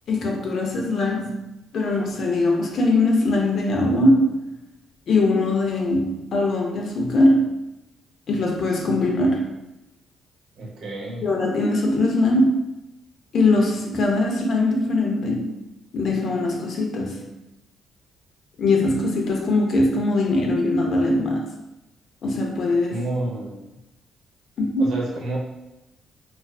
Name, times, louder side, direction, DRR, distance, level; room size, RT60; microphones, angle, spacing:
voice 1, 0.1-4.5 5.1-7.5 8.3-9.5 11.2-12.7 13.3-15.6 15.9-17.4 18.6-21.5 22.2-23.0 24.6-24.9, left 2 dB, 60° left, 0 dB, 0.5 m, -21 dB
voice 2, 10.6-11.2 22.9-23.6 24.8-25.4, right 1 dB, 75° right, -3 dB, 0.7 m, -30 dB
2.4 x 2.3 x 2.3 m, 0.96 s
cardioid pair, 90°, 0 cm